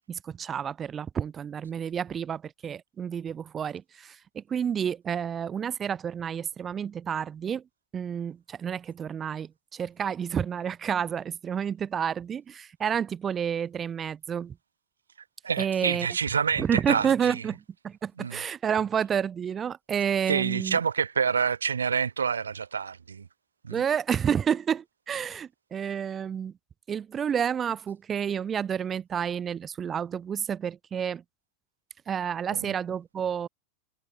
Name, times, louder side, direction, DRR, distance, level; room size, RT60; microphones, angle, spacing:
voice 1, 0.0-7.6 7.9-14.6 15.6-16.1 16.6-20.8 23.7-26.5 26.9-31.2 32.1-33.5, right 8 dB, 25° right, 1.6 m, -30 dB
voice 2, 15.4-17.1 18.2-18.4 20.3-23.3 23.7-23.8 32.5-32.6, right 6 dB, 70° right, 1.6 m, -27 dB
figure-of-eight pair, 90°, 0 cm